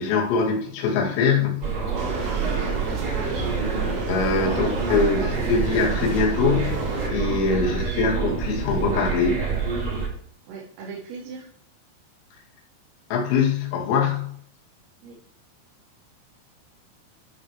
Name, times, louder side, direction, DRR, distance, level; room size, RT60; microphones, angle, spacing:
voice 1, 0.0-1.7 4.1-5.2 5.5-9.4 13.1-14.3, left 5 dB, 90° left, -1 dB, 4.8 m, -23 dB
sound 1, 1.6-10.1, right 5 dB, 35° right, 5.5 m, -27 dB
sound 2, 2.0-7.1, right 2 dB, 60° right, 5.1 m, -32 dB
voice 2, 2.4-3.6 4.4-5.6 7.5-8.0 10.5-11.5 15.0-15.2, right 4 dB, 80° right, -4 dB, 4.6 m, -38 dB
13.0 x 6.1 x 3.3 m, 0.63 s
omnidirectional pair, 5.9 m